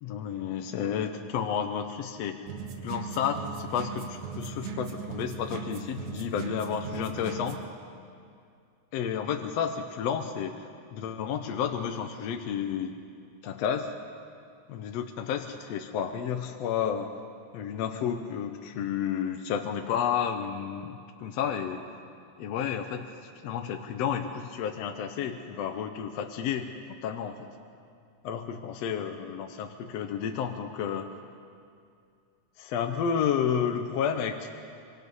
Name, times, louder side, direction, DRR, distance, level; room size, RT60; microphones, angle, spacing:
voice 1, 0.0-2.4 2.8-7.6 8.9-13.0 13.4-13.9 14.7-17.1 17.5-21.8 22.4-23.0 23.4-26.7 27.0-27.5 28.2-31.1 32.6-34.5, left 8 dB, 70° left, 5 dB, 1.8 m, -31 dB
sound 1, 2.5-7.7, right 5 dB, 75° right, 2.7 m, -38 dB
25.5 x 24.0 x 5.5 m, 2.3 s
omnidirectional pair, 3.5 m